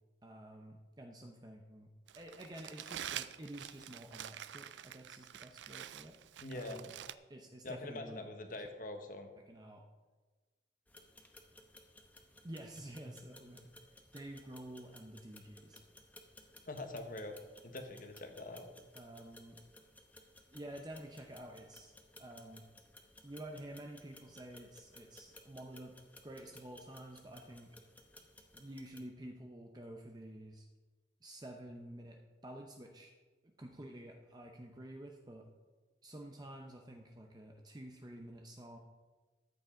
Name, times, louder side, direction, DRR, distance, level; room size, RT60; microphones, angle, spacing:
voice 1, 0.2-1.9 2.2-6.2 6.5-6.9 7.3-8.2 9.5-9.8 12.4-13.6 14.1-15.8 19.0-19.6 20.5-22.6 23.2-25.9 26.2-27.7 28.5-30.7 31.2-33.1 33.6-35.5 36.0-38.8, right 1 dB, 20° right, 2 dB, 0.7 m, -50 dB
Crumpling crinkling, 2.1-7.1, right 11 dB, 85° right, 0.4 m, -47 dB
voice 2, 6.4-6.8 7.6-9.3 16.7-17.3 17.6-18.6, left 2 dB, 50° left, 6 dB, 1.2 m, -44 dB
sound 1, 10.9-29.0, left 1 dB, 10° left, 0.8 m, -59 dB
13.5 x 8.2 x 3.8 m, 1.3 s
head